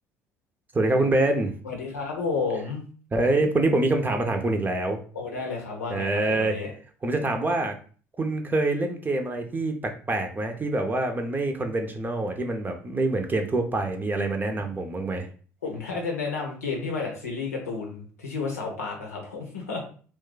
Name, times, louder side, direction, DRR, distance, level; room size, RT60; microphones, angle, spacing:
voice 1, 0.7-1.5 3.1-5.0 5.9-6.6 7.0-7.7 8.2-15.3, right 2 dB, 25° right, 5 dB, 0.7 m, -25 dB
voice 2, 1.6-2.8 5.1-6.7 15.6-19.8, left 4 dB, 85° left, 1 dB, 0.8 m, -31 dB
2.5 x 2.2 x 3.9 m, 0.42 s
figure-of-eight pair, 55°, 8 cm